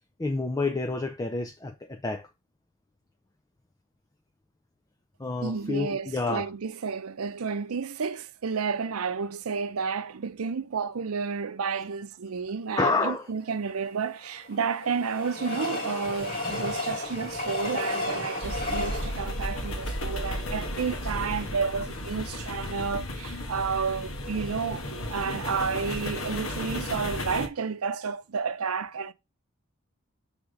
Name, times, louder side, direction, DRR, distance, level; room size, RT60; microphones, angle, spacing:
voice 1, 0.2-2.3 5.2-6.5 12.8-13.3, left 3 dB, 15° left, 0.4 m, -29 dB
voice 2, 5.4-29.1, right 5 dB, 90° right, 0.6 m, -31 dB
Train, 13.7-21.0 21.5-21.6 21.8-21.9, left 2 dB, 45° left, 2.2 m, -34 dB
sound 1, 18.4-27.5, left 1 dB, 75° left, 1.3 m, -34 dB
6.4 x 3.5 x 5.2 m
head